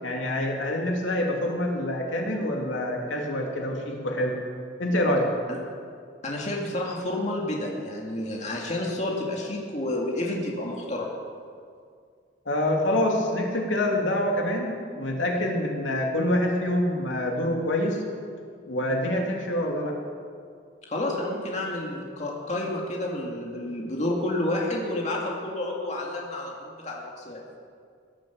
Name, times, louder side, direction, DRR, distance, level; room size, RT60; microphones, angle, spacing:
voice 1, 0.0-4.4 4.8-5.3 12.5-18.0 18.7-20.0, left 1 dB, 80° left, 0 dB, 2.8 m, -26 dB
voice 2, 6.2-11.1 20.9-27.4, left 1 dB, 40° left, -2 dB, 2.2 m, -30 dB
18.0 x 11.0 x 7.2 m, 2.2 s
head